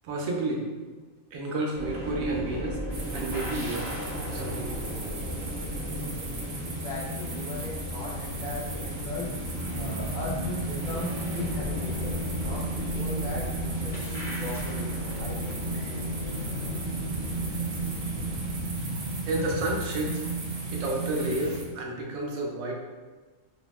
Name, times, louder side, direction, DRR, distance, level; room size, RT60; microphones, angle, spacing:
voice 1, 0.0-0.7 1.3-2.8 3.1-3.9 4.3-4.7 19.2-20.3 20.7-22.7, right 2 dB, 85° right, -1 dB, 1.0 m, -30 dB
sound 1, 1.7-18.7, right 1 dB, ahead, 0.8 m, -37 dB
sound 2, 2.9-21.6, right 1 dB, 65° right, 0.5 m, -34 dB
voice 2, 6.6-15.7, left 2 dB, 55° left, -8 dB, 0.5 m, -38 dB
2.7 x 2.0 x 3.0 m, 1.3 s
omnidirectional pair, 1.4 m